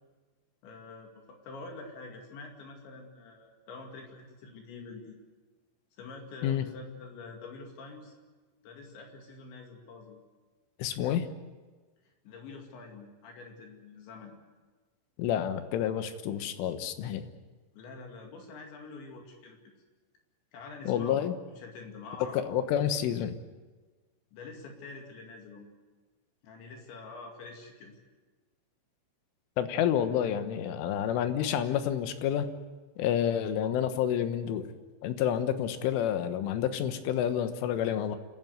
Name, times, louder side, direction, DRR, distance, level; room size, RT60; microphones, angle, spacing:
voice 1, 0.6-5.2 6.0-8.1 8.6-10.2 12.2-14.3 17.7-19.6 20.5-21.2 21.6-22.7 24.3-25.7 26.4-28.0, left 3 dB, 70° left, 2 dB, 4.5 m, -46 dB
voice 2, 10.8-11.3 15.2-17.3 20.9-21.4 22.3-23.4 29.6-32.5 33.0-34.7 35.0-38.2, left 9 dB, 90° left, 9 dB, 3.8 m, -29 dB
28.0 x 13.5 x 9.5 m, 1.3 s
omnidirectional pair, 5.5 m